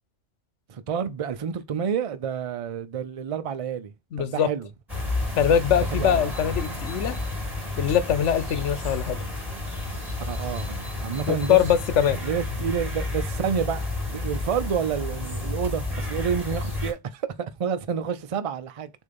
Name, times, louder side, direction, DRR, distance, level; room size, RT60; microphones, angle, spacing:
voice 1, 0.7-4.7 5.9-6.3 10.3-11.6 12.2-18.9, right 7 dB, 40° right, 0.5 m, -29 dB
voice 2, 4.1-4.5 5.4-7.2 7.8-9.2 11.3-12.2, left 9 dB, 85° left, 1.1 m, -22 dB
sound 1, 4.9-16.9, left 2 dB, ahead, 2.9 m, -31 dB
6.7 x 2.7 x 5.2 m
omnidirectional pair, 1.2 m